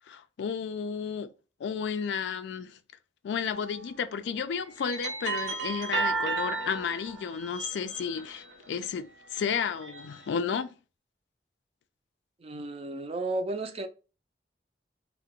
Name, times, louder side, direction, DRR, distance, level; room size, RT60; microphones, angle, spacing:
voice 1, 0.0-1.3 1.6-2.8 3.2-10.7, left 6 dB, 80° left, 0.3 m, -32 dB
sound 1, 3.5-3.8 4.5-8.6 9.2-10.3, right 4 dB, 85° right, 0.7 m, -34 dB
voice 2, 12.4-13.9, right 2 dB, 35° right, 0.4 m, -33 dB
2.8 x 2.0 x 3.5 m
head